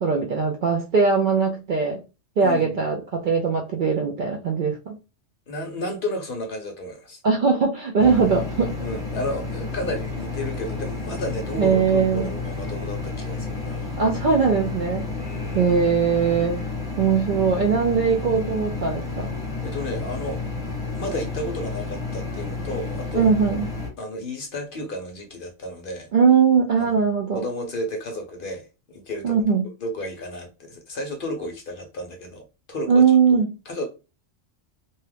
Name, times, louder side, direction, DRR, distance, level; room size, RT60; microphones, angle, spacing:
voice 1, 0.0-2.0 2.4-5.0 7.2-8.7 11.6-12.3 14.0-15.1 15.5-16.6 17.0-19.3 23.1-23.7 26.1-27.4 29.2-29.7 32.9-33.5, right 5 dB, 60° right, 0.5 m, -20 dB
voice 2, 2.4-2.9 5.5-7.2 8.8-13.9 15.2-15.7 19.6-20.4 20.9-23.3 24.0-26.1 26.8-26.9 27.3-33.0 33.3-33.4 33.7-33.8, left 1 dB, 55° left, 0.7 m, -32 dB
sound 1, 8.0-23.9, left 3 dB, 5° right, 1.2 m, -31 dB
2.7 x 2.3 x 3.3 m
omnidirectional pair, 1.3 m